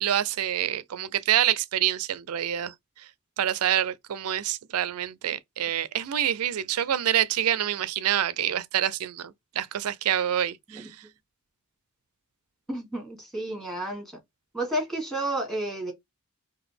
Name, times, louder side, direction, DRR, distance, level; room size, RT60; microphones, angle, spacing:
voice 1, 0.0-2.7 3.4-10.9, right 11 dB, 75° right, 0.4 m, -26 dB
voice 2, 12.7-14.0 14.5-15.9, right 1 dB, ahead, 1.4 m, -31 dB
3.9 x 2.5 x 3.3 m
head